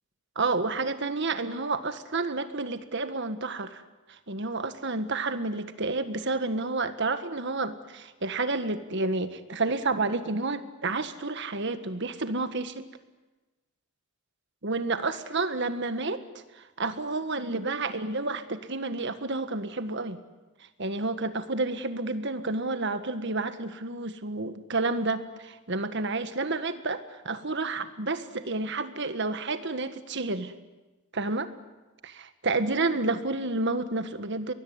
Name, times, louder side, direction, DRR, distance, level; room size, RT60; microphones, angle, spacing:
voice 1, 0.3-3.8 4.3-12.9 14.6-16.2 16.8-20.2 20.8-30.5 31.1-31.5 32.4-34.5, right 3 dB, 55° right, 10 dB, 1.6 m, -30 dB
23.0 x 21.0 x 9.7 m, 1.2 s
head